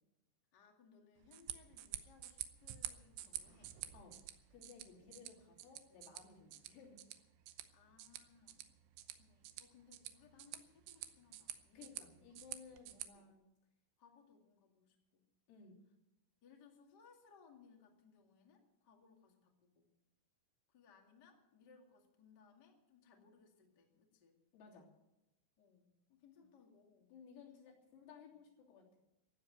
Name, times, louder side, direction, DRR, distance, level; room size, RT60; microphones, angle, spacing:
voice 1, 0.5-3.8 4.8-5.0 7.7-8.7 9.2-12.2 13.1-13.3 14.0-15.2 16.4-19.9 20.7-24.4 25.6-27.1, left 6 dB, 55° left, 1 dB, 1.1 m, -66 dB
sound 1, 1.2-13.1, right 13 dB, 85° right, 2.4 m, -50 dB
voice 2, 4.5-7.0 11.8-13.5 15.5-15.8 24.5-24.9 26.4-26.5 27.1-29.0, left 5 dB, 80° left, -4 dB, 6.0 m, -58 dB
15.0 x 8.6 x 9.3 m, 0.92 s
omnidirectional pair, 6.0 m